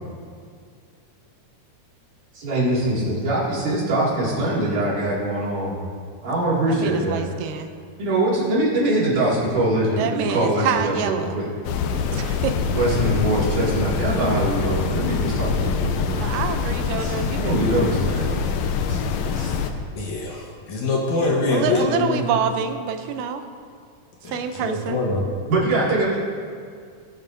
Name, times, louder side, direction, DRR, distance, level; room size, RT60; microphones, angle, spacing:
voice 1, 2.3-5.8 6.2-7.2 8.0-11.5 12.7-16.3 17.0-18.3 18.9-19.0 19.4-19.6 25.5-26.2, right 1 dB, 70° right, -6 dB, 3.8 m, -23 dB
voice 2, 6.7-7.7 9.9-11.4 12.1-12.6 16.2-18.0 18.3-18.6 21.3-23.4 24.2-25.0, right 7 dB, 90° right, 7 dB, 2.3 m, -27 dB
sound 1, 11.6-19.7, left 6 dB, 80° left, 1.7 m, -25 dB
voice 3, 20.0-22.2 24.2-25.2, left 3 dB, 65° left, -2 dB, 2.5 m, -24 dB
18.5 x 7.3 x 2.7 m, 2.1 s
omnidirectional pair, 3.7 m